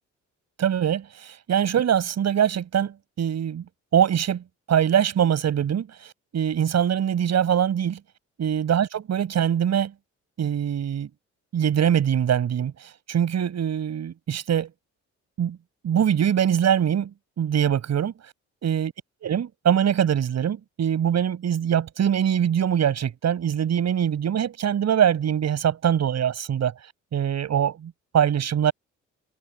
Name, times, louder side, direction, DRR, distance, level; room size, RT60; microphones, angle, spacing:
voice 1, 0.6-3.6 3.9-8.0 8.4-9.9 10.4-11.1 11.5-14.7 15.4-15.6 15.8-18.1 18.6-18.9 19.2-26.7 27.1-28.7, right 9 dB, 60° right, 7.5 m, -23 dB
cardioid pair, 90°, 30 cm